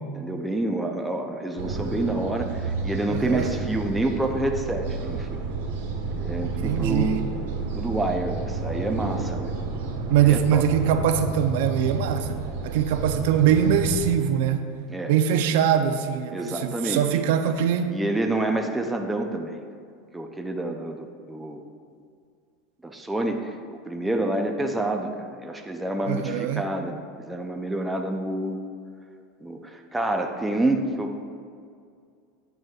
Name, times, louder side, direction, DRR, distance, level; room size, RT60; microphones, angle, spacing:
voice 1, 0.1-5.4 6.2-7.2 7.7-9.5 10.2-10.6 14.9-15.1 16.3-17.1 17.9-19.6 20.1-21.6 22.8-28.6 29.4-31.3, right 1 dB, 5° right, 3 dB, 0.5 m, -28 dB
sound 1, 1.6-14.1, right 3 dB, 85° right, 1.2 m, -31 dB
voice 2, 3.1-3.5 6.4-7.2 10.1-14.7 15.0-17.9 26.1-26.6, right 9 dB, 65° right, 8 dB, 0.5 m, -23 dB
9.2 x 9.0 x 2.4 m, 2.2 s
supercardioid pair, 165°, 0 cm